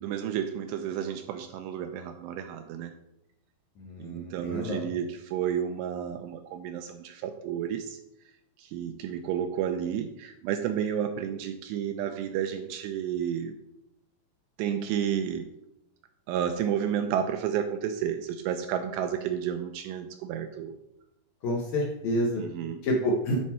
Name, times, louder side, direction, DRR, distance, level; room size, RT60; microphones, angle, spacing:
voice 1, 0.0-2.9 4.0-8.0 8.6-13.5 14.6-15.4 16.3-20.8 22.4-22.8, right 9 dB, 85° right, 7 dB, 2.7 m, -31 dB
voice 2, 3.8-4.9 21.4-22.4 22.8-23.4, equal, 75° left, -1 dB, 1.7 m, -28 dB
10.0 x 4.3 x 4.3 m, 0.86 s
omnidirectional pair, 4.9 m